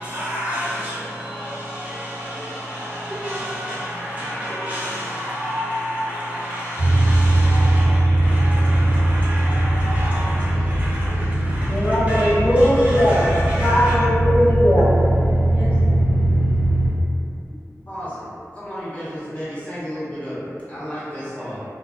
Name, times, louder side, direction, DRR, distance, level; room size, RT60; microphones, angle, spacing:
voice 1, 0.0-13.9 15.5-15.8, equal, 25° right, 0.9 m, -30 dB
sound 1, 6.8-16.9, right 1 dB, 85° right, 0.9 m, -19 dB
voice 2, 11.7-13.2 13.6-15.0, equal, 50° left, 0.7 m, -18 dB
voice 3, 17.9-18.3 18.5-21.6, equal, 25° left, 1.1 m, -32 dB
2.3 x 2.2 x 2.4 m
wide cardioid pair, 40°, 6 cm